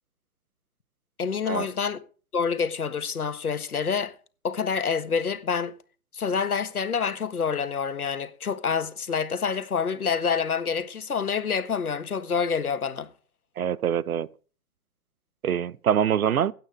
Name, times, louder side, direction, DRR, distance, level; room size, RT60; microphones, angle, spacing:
voice 1, 1.2-2.0 2.3-4.1 4.4-5.7 6.1-13.1, left 6 dB, 90° left, 1.6 m, -27 dB
voice 2, 13.6-14.3 15.4-16.5, right 9 dB, 75° right, 0.9 m, -24 dB
16.0 x 8.8 x 5.0 m
hypercardioid pair, 135°, 43 cm